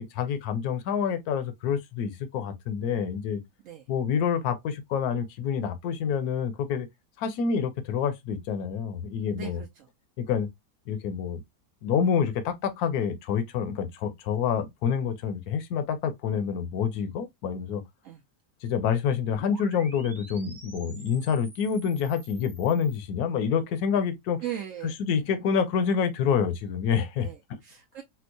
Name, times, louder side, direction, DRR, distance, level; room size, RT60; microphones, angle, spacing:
voice 1, 0.0-3.4 3.9-6.9 7.2-9.6 10.2-10.5 10.9-11.4 11.8-17.8 18.6-24.4 25.0-27.3, left 7 dB, 70° left, 1.2 m, -27 dB
voice 2, 9.3-9.9 18.0-18.2 24.4-24.9 27.2-28.0, right 11 dB, 70° right, 0.8 m, -38 dB
sound 1, 19.3-23.0, right 2 dB, ahead, 0.5 m, -49 dB
4.4 x 2.1 x 2.6 m
omnidirectional pair, 1.7 m